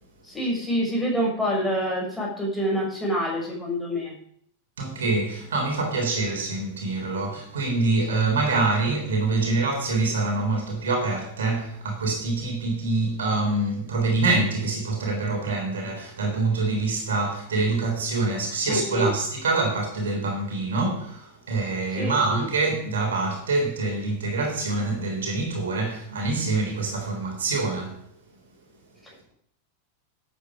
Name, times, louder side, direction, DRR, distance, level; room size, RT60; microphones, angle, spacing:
voice 1, 0.2-4.1 18.7-19.1 22.0-22.5, equal, 5° left, 6.1 m, -26 dB
voice 2, 4.8-28.0, right 3 dB, 65° right, 3.6 m, -25 dB
12.0 x 8.6 x 5.0 m
figure-of-eight pair, 90°, 0 cm